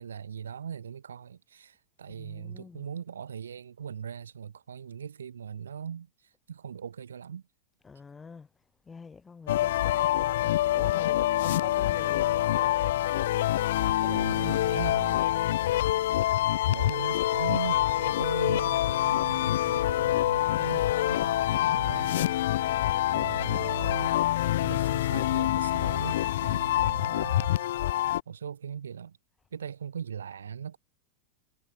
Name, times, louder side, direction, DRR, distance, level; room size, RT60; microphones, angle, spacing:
voice 1, 0.0-7.4 13.9-15.2 16.6-22.4 23.1-24.2 24.6-27.6 28.3-29.2 29.5-30.8, right 7 dB, 70° right, 2.1 m, -39 dB
voice 2, 2.1-2.9 7.8-12.4 14.0-14.2, left 5 dB, 15° left, 5.9 m, -48 dB
sound 1, 9.5-28.2, left 14 dB, 55° left, 0.5 m, -26 dB
figure-of-eight pair, 90°, 0 cm